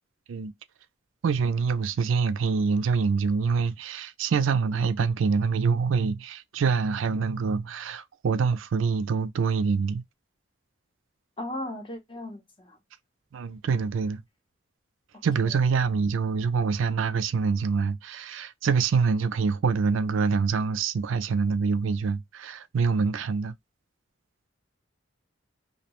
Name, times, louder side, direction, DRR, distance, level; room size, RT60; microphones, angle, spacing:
voice 1, 1.2-10.0 13.3-14.2 15.2-23.5, right 5 dB, 80° right, 0.4 m, -25 dB
voice 2, 11.4-12.8 15.1-15.6, left 1 dB, 25° left, 0.6 m, -37 dB
2.6 x 2.0 x 2.9 m
head